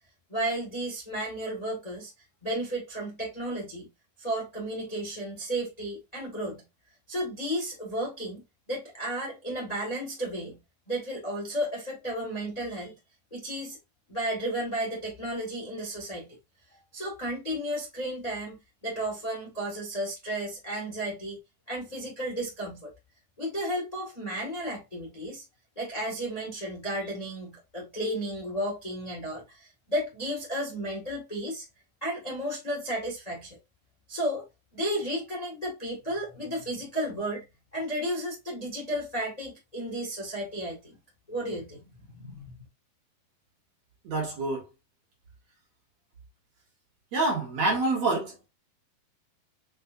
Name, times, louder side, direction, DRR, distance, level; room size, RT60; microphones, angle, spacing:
voice 1, 0.3-2.1 2.4-3.9 4.2-6.6 7.1-10.6 10.9-12.9 13.3-13.8 14.1-16.3 16.9-18.6 18.8-21.4 21.7-22.9 23.4-25.4 25.7-31.6 32.0-33.6 34.1-34.5 34.7-37.4 37.7-41.0 41.3-42.7, right 1 dB, 55° left, 0.4 m, -33 dB
voice 2, 44.0-44.7 47.1-48.3, right 2 dB, 55° right, 2.3 m, -26 dB
5.9 x 2.6 x 2.6 m
omnidirectional pair, 4.1 m